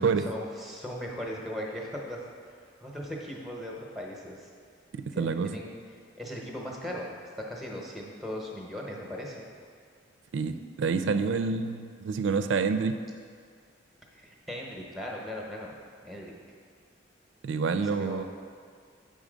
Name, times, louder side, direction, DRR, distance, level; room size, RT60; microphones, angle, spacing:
voice 1, 0.3-2.2 2.8-4.5 5.1-5.8 6.2-7.2 7.5-9.5 14.1-15.7 16.0-16.4 17.8-18.2, equal, ahead, -1 dB, 0.8 m, -38 dB
voice 2, 5.2-5.5 10.3-13.0 17.4-18.2, right 5 dB, 75° right, 10 dB, 0.4 m, -27 dB
8.2 x 3.9 x 5.1 m, 2.1 s
head